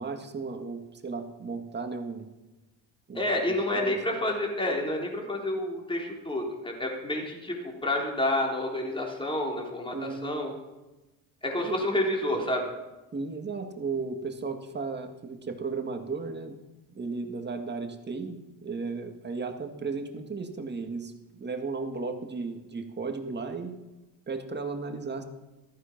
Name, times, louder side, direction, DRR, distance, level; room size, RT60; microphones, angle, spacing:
voice 1, 0.0-2.3 3.1-3.4 3.7-4.0 9.9-10.6 11.6-11.8 13.1-16.6 16.9-23.7 24.3-25.2, right 4 dB, 25° right, 5 dB, 2.0 m, -35 dB
voice 2, 3.1-10.5 11.4-12.7, left 1 dB, 10° left, 0 dB, 3.7 m, -29 dB
14.5 x 13.5 x 6.0 m, 1.1 s
supercardioid pair, 95°, 42 cm